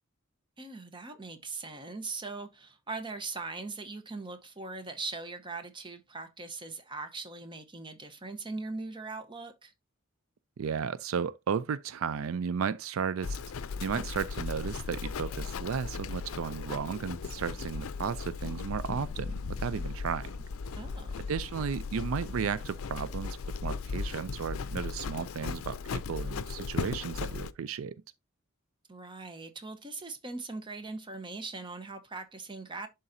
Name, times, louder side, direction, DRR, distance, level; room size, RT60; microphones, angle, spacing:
voice 1, 0.6-9.7 20.8-21.3 28.9-32.9, right 3 dB, 25° right, 0.9 m, -40 dB
voice 2, 10.6-13.4 13.8-20.3 21.3-27.9, right 6 dB, 75° right, 0.4 m, -34 dB
Livestock farm animals working animals, 13.2-27.5, left 4 dB, 90° left, 0.5 m, -37 dB
11.0 x 3.8 x 2.7 m
head